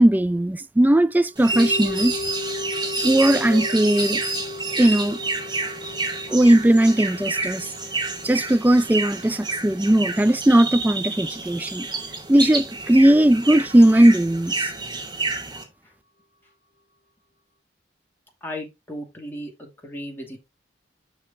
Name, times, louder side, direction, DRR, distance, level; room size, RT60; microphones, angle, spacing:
voice 1, 0.0-2.1 3.0-4.2 4.8-5.2 6.3-7.7 8.2-11.9 12.3-14.7, right 1 dB, 10° right, 0.3 m, -18 dB
sound 1, 1.4-15.6, right 3 dB, 25° right, 2.4 m, -29 dB
sound 2, 1.5-11.8 12.1-12.2, left 2 dB, 85° left, 0.9 m, -36 dB
voice 2, 18.4-20.4, left 1 dB, 10° left, 2.5 m, -36 dB
6.4 x 6.3 x 3.7 m
head